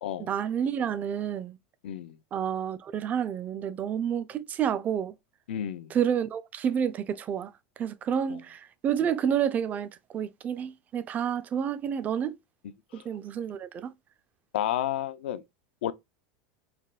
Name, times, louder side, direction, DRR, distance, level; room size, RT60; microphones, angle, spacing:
voice 1, 0.2-1.6 2.3-5.1 5.9-7.5 7.8-12.4 12.9-13.9, right 8 dB, 30° right, 0.3 m, -29 dB
voice 2, 1.8-2.2 5.5-5.9 8.3-8.4 12.9-13.0 14.5-15.4 15.8-15.9, left 11 dB, 85° left, 0.4 m, -31 dB
3.2 x 2.1 x 2.3 m
supercardioid pair, 115°, 6 cm